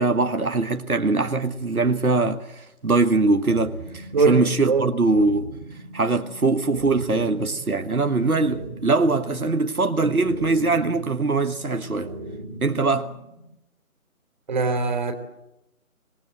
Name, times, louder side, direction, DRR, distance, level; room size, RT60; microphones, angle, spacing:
voice 1, 0.0-5.5 5.9-12.1 12.6-13.1, right 3 dB, 85° right, 1.5 m, -22 dB
sound 1, 3.5-13.4, right 2 dB, 10° right, 1.0 m, -39 dB
voice 2, 4.1-4.9 14.5-15.1, right 4 dB, 30° right, 2.9 m, -22 dB
26.0 x 20.0 x 7.8 m
figure-of-eight pair, 160°, 43 cm